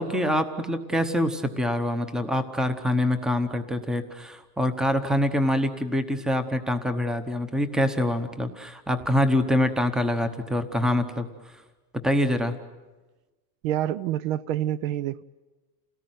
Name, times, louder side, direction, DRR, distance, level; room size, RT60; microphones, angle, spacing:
voice 1, 0.0-11.3 12.0-12.6, left 1 dB, ahead, 10 dB, 0.8 m, -25 dB
voice 2, 13.6-15.2, right 12 dB, 55° right, 18 dB, 0.7 m, -27 dB
28.5 x 18.5 x 9.2 m, 1.2 s
supercardioid pair, 165°, 48 cm